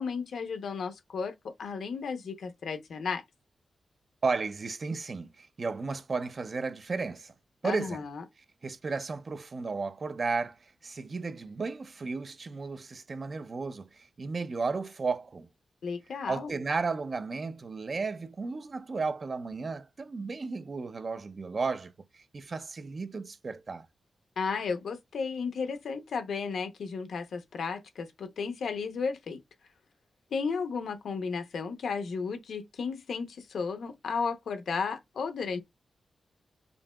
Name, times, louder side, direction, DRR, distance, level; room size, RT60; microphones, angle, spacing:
voice 1, 0.0-1.3 1.6-3.2 7.6-8.2 15.8-16.5 24.4-29.4 30.3-35.6, left 5 dB, 80° left, 0.8 m, -34 dB
voice 2, 4.2-7.3 7.6-8.0 8.6-15.5 16.3-23.9, right 4 dB, 40° right, 0.4 m, -34 dB
5.3 x 2.8 x 2.3 m
wide cardioid pair, 140°, 0 cm